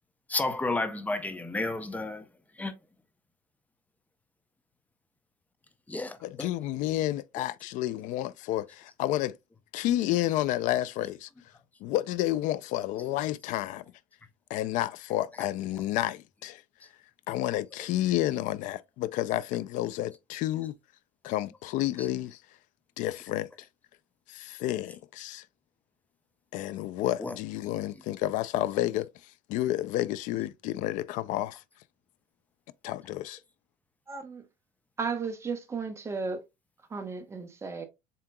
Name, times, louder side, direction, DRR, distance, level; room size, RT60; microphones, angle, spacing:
voice 1, 0.3-2.2 2.6-2.7 5.9-6.5 27.2-27.3, left 2 dB, 10° left, 0.6 m, -31 dB
voice 2, 6.2-9.4 9.7-11.3 11.8-13.8 14.5-16.6 17.3-20.7 21.2-22.4 23.0-23.5 24.3-25.4 26.5-29.1 29.5-31.6 32.8-33.4, left 14 dB, 60° left, 0.4 m, -30 dB
voice 3, 34.1-34.4 35.0-36.4 36.9-37.8, right 5 dB, 20° right, 0.9 m, -34 dB
7.4 x 2.9 x 2.2 m
cardioid pair, 145°, 15 cm